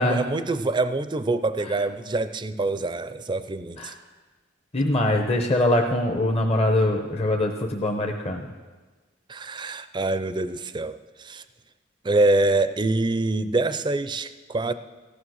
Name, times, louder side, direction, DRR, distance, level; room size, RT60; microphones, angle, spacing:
voice 1, 0.0-4.0 9.3-11.4 12.0-14.7, right 2 dB, 25° right, 12 dB, 0.5 m, -25 dB
voice 2, 4.7-8.4, left 1 dB, 30° left, 2 dB, 0.8 m, -23 dB
15.0 x 10.0 x 6.3 m, 1.3 s
head